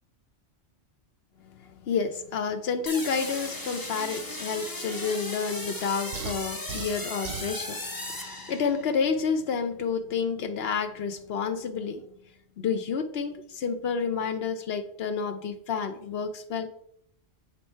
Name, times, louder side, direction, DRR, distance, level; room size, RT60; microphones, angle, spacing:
voice 1, 1.4-12.1 12.6-16.7, left 5 dB, 60° left, 0.9 m, -30 dB
sound 1, 2.9-9.0, left 1 dB, 20° left, 0.8 m, -37 dB
sound 2, 6.1-7.6, right 8 dB, 70° right, 0.9 m, -38 dB
7.1 x 4.5 x 4.5 m
omnidirectional pair, 1.2 m